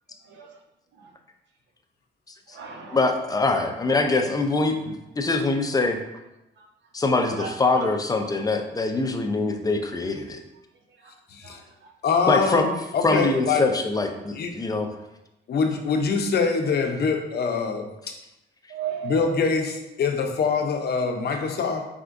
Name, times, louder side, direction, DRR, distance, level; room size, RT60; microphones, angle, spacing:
voice 1, 0.2-0.6 1.0-1.1 2.5-3.0 6.6-6.7 7.2-7.9 11.0-11.1 11.4-11.7 18.7-19.3, right 8 dB, 65° right, 3 dB, 0.8 m, -36 dB
voice 2, 2.9-6.0 6.9-10.4 12.3-12.7 13.0-14.9, left 3 dB, 20° left, 5 dB, 0.5 m, -23 dB
voice 3, 11.3-11.6 12.0-13.6 14.4-14.5 15.5-17.8 19.0-21.8, left 5 dB, 55° left, 4 dB, 0.7 m, -24 dB
4.6 x 3.5 x 2.6 m, 0.92 s
cardioid pair, 90°, 20 cm